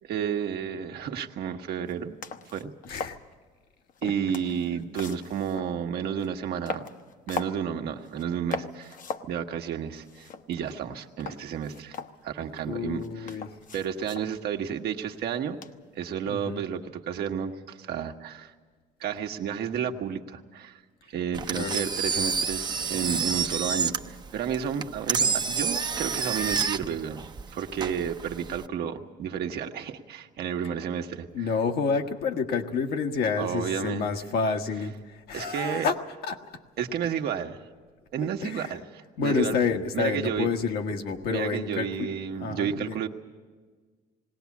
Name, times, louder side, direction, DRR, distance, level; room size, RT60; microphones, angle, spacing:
voice 1, 0.0-2.2 2.5-2.7 4.0-6.8 7.3-9.0 9.2-12.0 12.2-13.4 13.7-15.6 15.9-18.5 19.0-20.8 21.1-31.5 33.4-34.1 35.3-35.9 36.8-37.6 38.1-39.6 39.9-40.5 41.3-43.1, right 8 dB, 70° right, 4 dB, 1.3 m, -31 dB
sound 1, 1.9-2.0 2.2-3.3 3.9-5.8 6.2-6.3 6.7-7.6 8.0-8.3 8.5-9.3 9.7-9.8 10.0-10.8 11.2-12.6 13.0-14.3 15.6-16.0, left 5 dB, 50° left, 0.9 m, -39 dB
voice 2, 2.8-3.2 4.0-4.1 12.7-13.5 16.2-16.6 21.5-21.9 31.3-36.0 36.2-36.4 38.4-38.7 39.2-42.1 42.4-43.0, left 5 dB, 70° left, 4 dB, 1.4 m, -29 dB
Engine, 21.3-28.7, right 5 dB, 25° right, 0.7 m, -29 dB
20.0 x 17.5 x 8.5 m, 1.4 s
cardioid pair, 110°, 17 cm